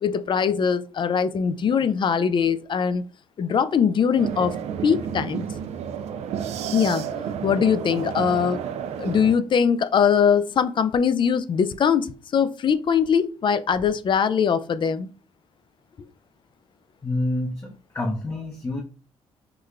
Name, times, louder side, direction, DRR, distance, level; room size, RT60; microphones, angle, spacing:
voice 1, 0.0-3.0 3.4-4.5 4.8-5.4 6.7-7.0 7.4-8.6 9.0-15.1, left 7 dB, 45° left, 13 dB, 0.4 m, -21 dB
sound 1, 4.2-9.4, right 8 dB, 70° right, 0.4 m, -31 dB
voice 2, 17.0-18.8, left 1 dB, 25° left, -2 dB, 0.7 m, -28 dB
4.8 x 2.1 x 2.4 m, 0.38 s
cardioid pair, 75°, 11 cm